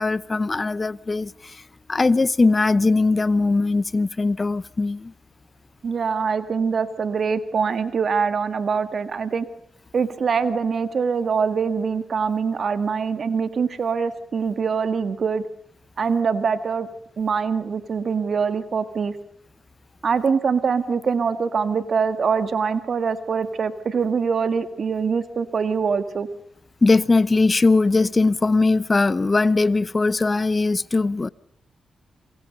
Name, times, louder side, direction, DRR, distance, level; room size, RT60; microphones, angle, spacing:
voice 1, 0.0-1.6 1.9-5.1 26.8-31.3, left 3 dB, 35° left, 0.8 m, -20 dB
voice 2, 5.8-9.5 9.9-15.4 16.0-16.9 17.2-19.1 20.0-26.3, right 5 dB, 60° right, 1.8 m, -23 dB
27.5 x 22.5 x 5.3 m
supercardioid pair, 55°, 0 cm